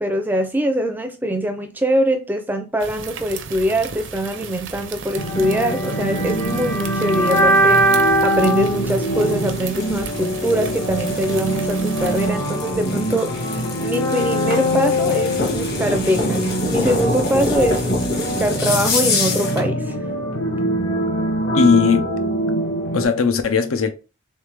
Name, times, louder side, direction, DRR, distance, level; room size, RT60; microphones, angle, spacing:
voice 1, 0.0-7.8 8.2-20.0, equal, 10° right, 0.4 m, -23 dB
sound 1, 2.8-12.3, right 6 dB, 65° right, 0.5 m, -35 dB
sound 2, 5.1-23.1, right 1 dB, 70° left, 1.1 m, -22 dB
sound 3, 8.7-19.7, left 2 dB, 50° left, 1.2 m, -27 dB
voice 2, 21.5-22.1 22.9-23.9, left 5 dB, 90° left, 0.6 m, -17 dB
3.4 x 3.3 x 3.2 m
head